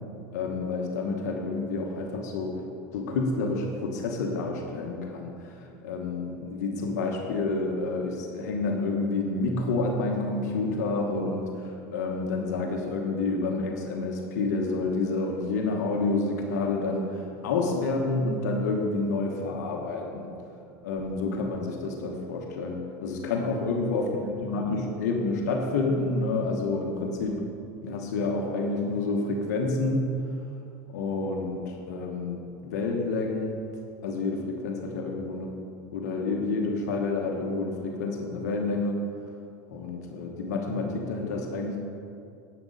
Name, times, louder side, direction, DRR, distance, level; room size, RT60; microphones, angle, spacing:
voice 1, 0.3-2.6 2.9-20.3 20.8-27.4 27.8-30.1 30.9-33.6 34.0-35.6 35.9-39.0 39.7-41.8, left 3 dB, 85° left, 1 dB, 1.2 m, -29 dB
10.5 x 8.5 x 4.0 m, 2.5 s
supercardioid pair, 110°, 9 cm